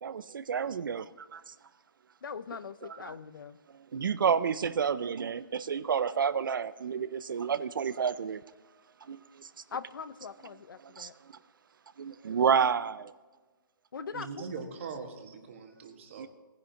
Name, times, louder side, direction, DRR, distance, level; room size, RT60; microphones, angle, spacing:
voice 1, 0.0-1.5 2.8-3.1 3.9-8.4 9.1-9.5 10.9-11.1 12.0-13.1 16.2-16.3, right 7 dB, 65° right, 0.5 m, -30 dB
voice 2, 2.2-3.6 9.7-11.1 13.9-14.3, left 6 dB, 70° left, 0.6 m, -41 dB
voice 3, 14.1-16.3, right 5 dB, 35° right, 1.5 m, -41 dB
18.0 x 10.5 x 2.9 m
hypercardioid pair, 175°, 12 cm